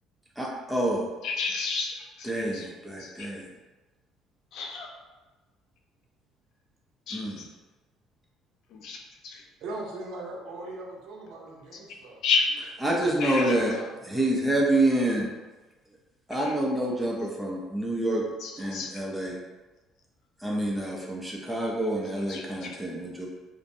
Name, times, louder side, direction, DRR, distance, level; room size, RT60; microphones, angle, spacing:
voice 1, 0.4-1.1 2.2-3.5 7.1-7.4 12.8-13.7 14.1-15.3 16.3-18.2 18.6-19.4 20.4-23.3, right 1 dB, ahead, -4 dB, 0.5 m, -27 dB
voice 2, 1.2-2.7 3.0-3.3 4.5-4.9 7.1-7.5 8.7-9.4 11.9-12.0 12.2-12.5 13.2-13.6 16.4-16.6 18.4-19.0 22.3-22.8, left 5 dB, 60° left, 2 dB, 0.4 m, -31 dB
voice 3, 9.6-12.2 13.0-14.3, right 2 dB, 70° right, -1 dB, 0.5 m, -40 dB
2.5 x 2.1 x 2.6 m, 1.2 s
cardioid pair, 140°, 0 cm